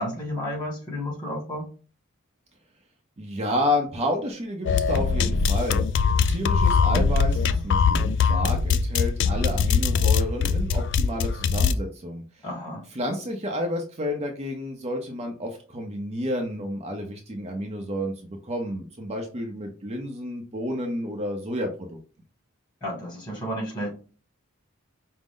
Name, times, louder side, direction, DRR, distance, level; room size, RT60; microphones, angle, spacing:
voice 1, 0.0-1.7 12.4-12.8 22.8-23.9, equal, 20° left, -2 dB, 1.8 m, -32 dB
voice 2, 3.2-5.8 6.3-12.2 12.9-22.0, left 1 dB, 30° right, 3 dB, 0.6 m, -30 dB
sound 1, 4.6-11.7, left 5 dB, 60° left, 0.3 m, -22 dB
5.0 x 2.0 x 3.7 m, 0.37 s
head